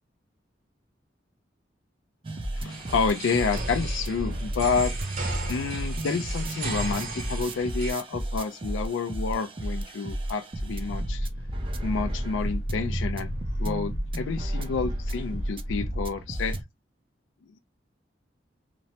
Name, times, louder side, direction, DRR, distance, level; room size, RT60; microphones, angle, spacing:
sound 1, 2.2-16.6, right 1 dB, 30° right, 0.4 m, -33 dB
voice 1, 2.6-4.9 5.5-11.3 11.8-13.3 13.6-16.6, left 5 dB, 85° left, 0.4 m, -29 dB
sound 2, 2.7-7.9, right 3 dB, 50° right, 0.9 m, -36 dB
sound 3, 10.9-16.2, equal, 55° left, 1.0 m, -35 dB
2.9 x 2.1 x 2.7 m
head